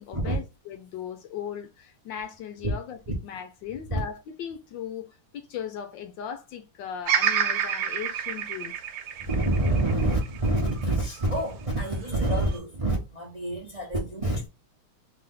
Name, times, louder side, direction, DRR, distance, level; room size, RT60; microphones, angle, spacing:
voice 1, 0.0-8.7, left 8 dB, 70° left, 1.2 m, -38 dB
Bird vocalization bird call bird song, 7.1-11.3 11.8-12.6, right 8 dB, 70° right, 1.5 m, -29 dB
voice 2, 9.2-14.5, right 1 dB, 25° right, 0.9 m, -27 dB
3.4 x 3.3 x 3.7 m
omnidirectional pair, 2.3 m